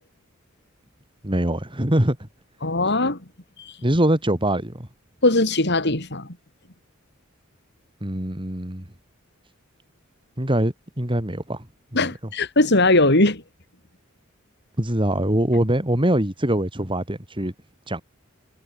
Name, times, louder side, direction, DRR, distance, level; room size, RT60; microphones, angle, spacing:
voice 1, 1.2-2.2 3.8-4.9 8.0-8.8 10.4-11.7 11.9-12.1 14.8-17.5 17.9-18.0, right 1 dB, 25° right, 3.7 m, -23 dB
voice 2, 2.6-3.2 5.2-6.3 11.9-13.4, left 2 dB, 55° left, 5.8 m, -19 dB
head